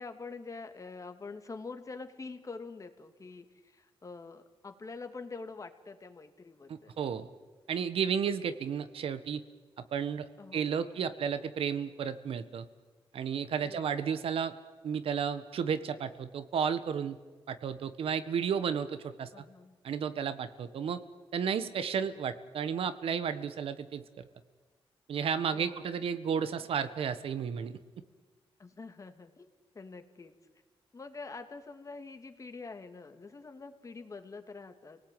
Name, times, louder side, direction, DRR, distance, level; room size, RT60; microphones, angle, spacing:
voice 1, 0.0-7.0 10.4-11.1 13.6-14.2 19.3-19.8 25.5-26.1 28.6-29.5 29.7-30.3 30.9-35.0, left 4 dB, 35° left, 7 dB, 2.3 m, -46 dB
voice 2, 6.7-7.3 7.7-9.4 9.9-12.6 13.1-14.5 14.8-17.2 17.5-19.4 19.8-21.0 21.3-24.0 25.1-27.7, right 7 dB, 80° right, 12 dB, 1.5 m, -32 dB
29.5 x 18.5 x 9.3 m, 1.4 s
cardioid pair, 105°, 9 cm